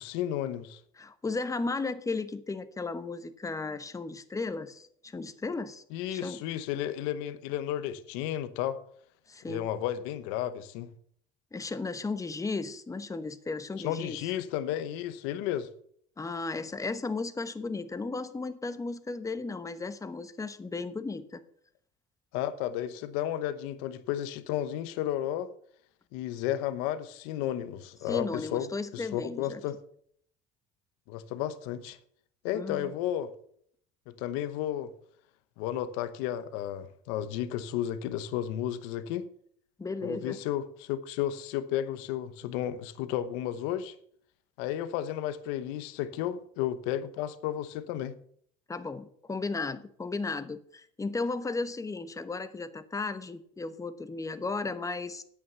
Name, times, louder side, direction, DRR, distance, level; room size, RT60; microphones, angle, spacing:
voice 1, 0.0-0.8 5.9-8.8 9.4-10.9 13.8-15.7 22.3-25.5 26.1-29.8 31.1-32.0 32.4-33.3 34.1-34.9 35.6-39.3 40.0-43.9 44.6-48.2, left 11 dB, 85° left, 1.0 m, -33 dB
voice 2, 1.0-5.8 6.1-6.4 9.3-9.7 11.5-14.3 16.2-21.4 28.0-29.6 32.5-32.9 39.8-40.4 48.7-55.2, left 3 dB, 15° left, 1.0 m, -35 dB
9.6 x 8.6 x 6.8 m
cardioid pair, 110°, 21 cm